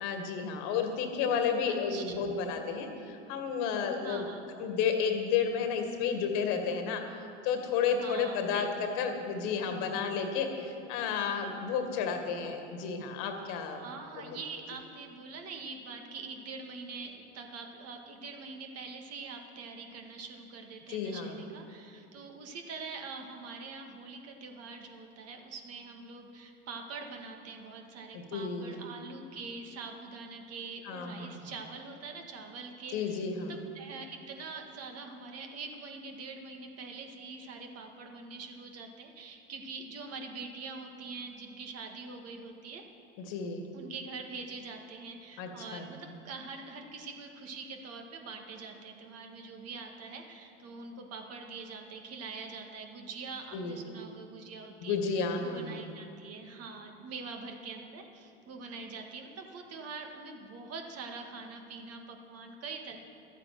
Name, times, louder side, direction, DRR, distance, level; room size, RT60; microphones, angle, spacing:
voice 1, 0.0-4.3 4.6-7.0 7.4-13.8 20.9-21.4 28.1-28.7 30.9-31.4 32.9-33.5 43.3-43.6 45.4-45.9 53.5-53.8 54.8-55.8, left 6 dB, 65° left, 5 dB, 1.9 m, -32 dB
voice 2, 1.7-2.1 4.0-4.4 7.9-9.0 13.5-42.8 43.7-63.0, right 4 dB, 50° right, 3 dB, 1.9 m, -44 dB
13.0 x 9.0 x 7.7 m, 2.6 s
hypercardioid pair, 90°, 33 cm